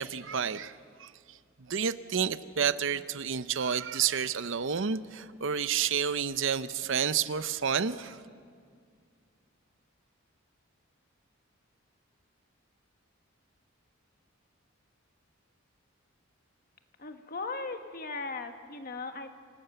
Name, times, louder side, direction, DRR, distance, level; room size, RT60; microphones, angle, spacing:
voice 1, 0.0-8.2, right 7 dB, 65° right, 14 dB, 0.7 m, -30 dB
voice 2, 17.0-19.3, left 3 dB, 45° left, 6 dB, 1.6 m, -38 dB
26.5 x 18.0 x 8.0 m, 2.2 s
head